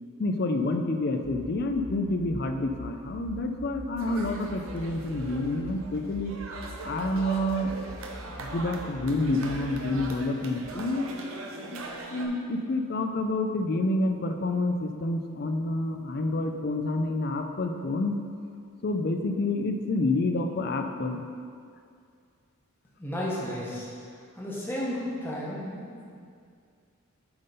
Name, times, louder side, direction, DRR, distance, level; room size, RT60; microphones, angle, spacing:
voice 1, 0.2-6.4 6.8-7.7 8.4-11.1 11.7-18.2 18.8-21.3, left 2 dB, 50° left, 6 dB, 0.4 m, -28 dB
sound 1, 1.2-10.1, equal, 45° right, 0.8 m, -44 dB
sound 2, 4.0-12.3, right 2 dB, 80° right, 0.7 m, -40 dB
voice 2, 23.0-23.9 24.3-26.1, left 1 dB, 10° left, -6 dB, 1.2 m, -33 dB
7.8 x 3.7 x 5.4 m, 2.3 s
head